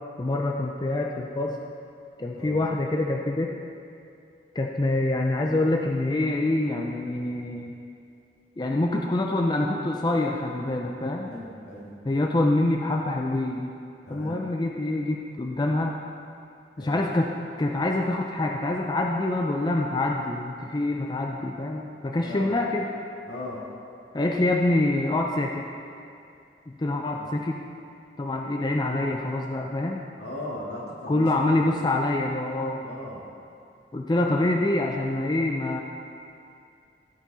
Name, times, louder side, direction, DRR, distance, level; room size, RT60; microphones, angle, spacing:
voice 1, 0.2-1.6 2.2-3.5 4.5-7.7 8.6-11.3 12.0-13.7 14.1-15.9 16.8-17.3 17.6-22.9 24.1-25.7 26.7-27.6 28.2-30.0 31.1-32.8 33.9-35.8, left 2 dB, 25° left, 1 dB, 0.4 m, -26 dB
voice 2, 11.2-11.9 14.1-14.4 16.8-17.0 22.2-22.5 23.3-23.6 27.1-27.2 30.2-31.2 31.6-31.7 32.8-33.2, left 1 dB, 80° left, -4 dB, 2.1 m, -37 dB
15.5 x 5.2 x 4.0 m, 2.5 s
head